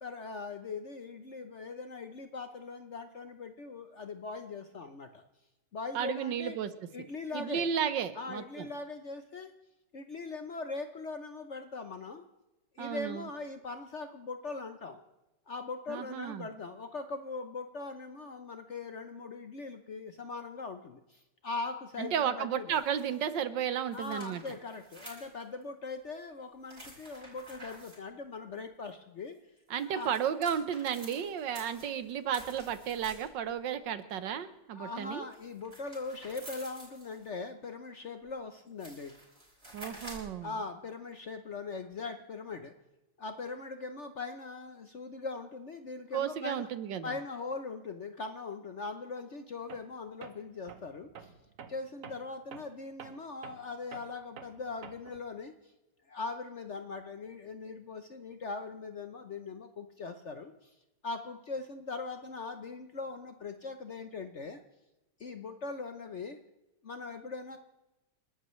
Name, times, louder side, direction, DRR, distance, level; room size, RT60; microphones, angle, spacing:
voice 1, 0.0-5.2 5.7-6.6 6.9-7.7 8.2-9.5 9.9-12.2 12.7-15.0 15.5-22.8 23.9-29.3 29.8-30.2 34.7-39.1 40.4-42.7 43.2-46.7 47.0-51.3 51.7-55.5 56.1-60.7 61.0-64.6 65.2-66.4 66.8-67.6, left 3 dB, 50° left, 7 dB, 0.9 m, -41 dB
voice 2, 5.9-6.7 7.3-8.7 12.8-13.3 15.9-16.5 22.0-24.4 29.7-35.3 39.7-40.5 46.1-47.1, right 8 dB, 75° right, 12 dB, 1.6 m, -33 dB
sound 1, 22.7-23.3 23.9-25.6 26.6-28.0 29.6-33.5 35.3-37.3 38.3-38.4 38.7-40.4, right 1 dB, 30° right, 5.2 m, -50 dB
Tools, 49.7-49.9 50.2-55.3, right 7 dB, 50° right, 1.2 m, -50 dB
29.5 x 12.5 x 3.2 m, 0.98 s
omnidirectional pair, 2.0 m